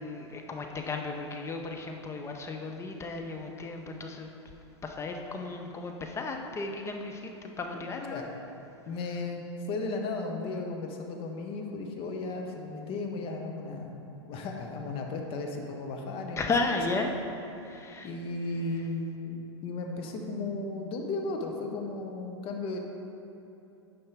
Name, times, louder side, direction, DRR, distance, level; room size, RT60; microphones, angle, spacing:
voice 1, 0.0-4.3 4.8-8.2 16.4-17.1 17.6-18.1, left 3 dB, 20° left, 3 dB, 0.6 m, -34 dB
voice 2, 8.9-9.4 9.7-13.9 14.2-16.7 18.0-22.8, left 3 dB, 40° left, 2 dB, 1.0 m, -35 dB
9.4 x 5.5 x 3.5 m, 2.8 s
hypercardioid pair, 105°, 15 cm